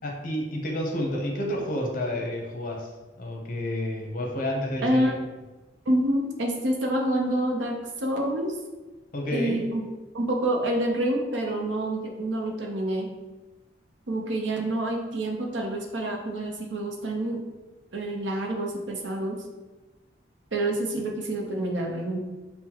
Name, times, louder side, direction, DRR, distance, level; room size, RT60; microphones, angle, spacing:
voice 1, 0.0-2.9 3.2-5.1 9.1-9.7, left 1 dB, 50° left, 0 dB, 0.7 m, -30 dB
voice 2, 4.8-5.2 5.9-8.5 9.3-9.8 10.1-13.1 14.1-17.4 17.9-19.4 20.5-22.2, right 1 dB, 80° right, 1 dB, 0.7 m, -27 dB
5.6 x 2.2 x 2.9 m, 1.2 s
head